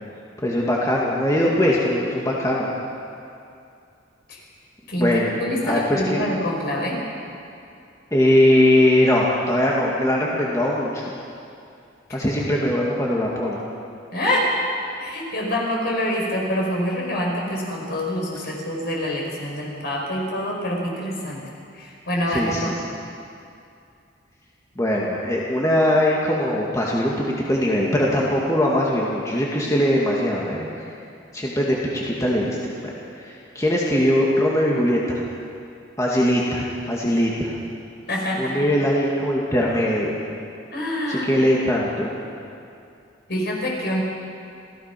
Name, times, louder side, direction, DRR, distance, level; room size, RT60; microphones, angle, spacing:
voice 1, 0.4-2.7 5.0-6.3 8.1-11.0 12.1-13.6 22.3-22.7 24.8-30.9 31.3-35.2 36.0-37.6 38.4-40.2 41.1-42.1, left 1 dB, 15° left, -4 dB, 2.2 m, -21 dB
voice 2, 5.4-7.0 12.1-12.2 14.1-14.5 15.0-21.4 21.7-22.7 38.1-38.7 40.7-41.3 43.3-44.0, equal, 60° left, -2 dB, 5.5 m, -26 dB
27.5 x 17.0 x 6.1 m, 2.5 s
head